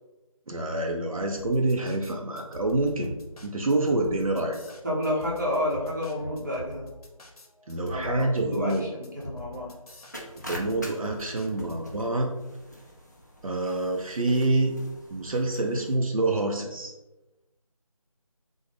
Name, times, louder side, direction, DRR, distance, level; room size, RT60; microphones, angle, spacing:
voice 1, 0.5-3.1 3.4-4.6 7.7-8.9 10.5-12.3 13.4-14.7 15.1-16.9, right 2 dB, 70° right, 1 dB, 0.5 m, -27 dB
sound 1, 1.4-12.0, left 1 dB, 85° left, 0.7 m, -44 dB
voice 2, 4.8-6.9 7.8-9.7, left 1 dB, 30° right, -5 dB, 0.7 m, -30 dB
sound 2, 10.1-15.9, equal, 30° left, 0.4 m, -44 dB
3.7 x 2.0 x 3.2 m, 1.0 s
figure-of-eight pair, 170°, 19 cm